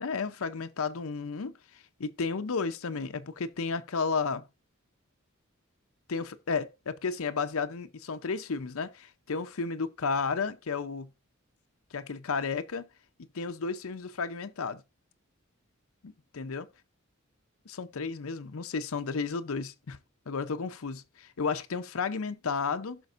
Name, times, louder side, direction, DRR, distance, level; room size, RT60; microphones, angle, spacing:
voice 1, 0.0-4.5 6.1-11.1 11.9-12.8 13.2-14.8 16.0-16.7 17.7-20.0 20.3-23.0, left 5 dB, 80° left, 0.6 m, -33 dB
17.0 x 5.9 x 2.5 m
head